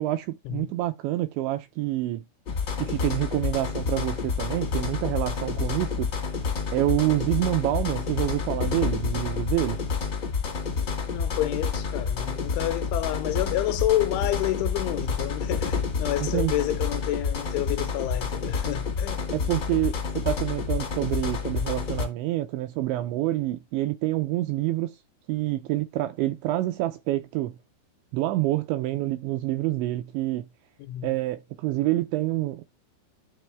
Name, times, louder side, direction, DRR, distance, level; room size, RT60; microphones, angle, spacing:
voice 1, 0.0-2.2 2.8-6.1 6.7-9.8 16.2-16.5 19.3-25.0 25.3-27.6 28.1-30.5 31.0-32.6, right 16 dB, 85° right, 2.6 m, -27 dB
sound 1, 2.5-22.1, left 5 dB, 65° left, 1.1 m, -29 dB
voice 2, 11.1-19.3 30.8-31.1, left 14 dB, 80° left, 3.0 m, -29 dB
11.5 x 4.1 x 3.4 m
omnidirectional pair, 5.7 m